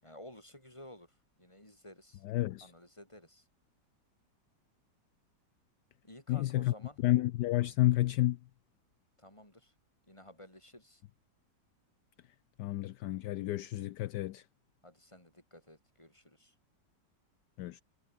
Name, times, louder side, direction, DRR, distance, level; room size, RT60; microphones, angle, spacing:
voice 1, 0.0-2.2 2.6-3.4 6.0-7.0 9.2-9.7 10.1-11.0 14.8-16.5, left 1 dB, 15° left, 6.4 m, -54 dB
voice 2, 2.2-2.7 6.3-6.7 7.0-8.4 12.6-14.4 17.6-17.8, left 15 dB, 75° left, 1.2 m, -30 dB
omnidirectional pair, 1.9 m